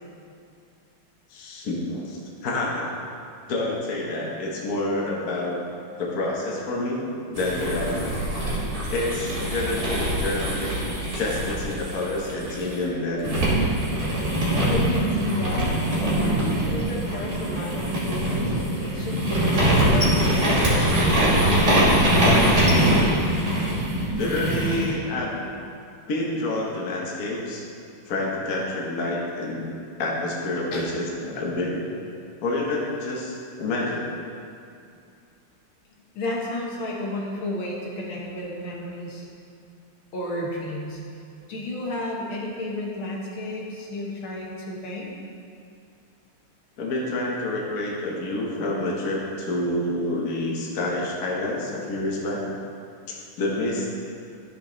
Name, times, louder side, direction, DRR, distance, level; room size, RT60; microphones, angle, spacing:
voice 1, 1.3-3.0 3.5-5.6 6.0-7.0 7.3-8.2 8.9-10.7 11.1-13.4 24.1-25.5 26.1-27.6 28.1-29.7 30.0-31.8 32.4-34.1 46.8-52.4 53.1-54.0, left 2 dB, 45° left, -3 dB, 1.5 m, -28 dB
sound 1, 7.4-12.8 13.2-24.9, right 1 dB, 35° right, 2.4 m, -23 dB
voice 2, 14.4-19.3 19.8-22.5 30.7-30.9 36.1-39.3 40.1-41.0 41.5-45.1, left 1 dB, 70° left, -3 dB, 2.0 m, -32 dB
13.0 x 5.4 x 3.9 m, 2.5 s
omnidirectional pair, 2.4 m